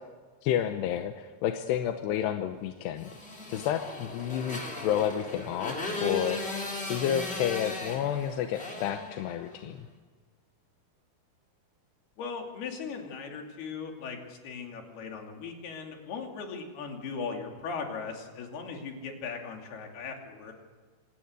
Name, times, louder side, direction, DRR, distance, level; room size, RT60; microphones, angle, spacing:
voice 1, 0.4-3.1 3.5-6.6 6.9-9.9, left 10 dB, 75° left, 7 dB, 2.7 m, -30 dB
Motorcycle, 3.0-9.7, left 2 dB, 15° left, 2.8 m, -37 dB
voice 2, 12.2-20.5, left 5 dB, 60° left, 2 dB, 4.5 m, -38 dB
25.5 x 18.5 x 8.2 m, 1.5 s
omnidirectional pair, 5.5 m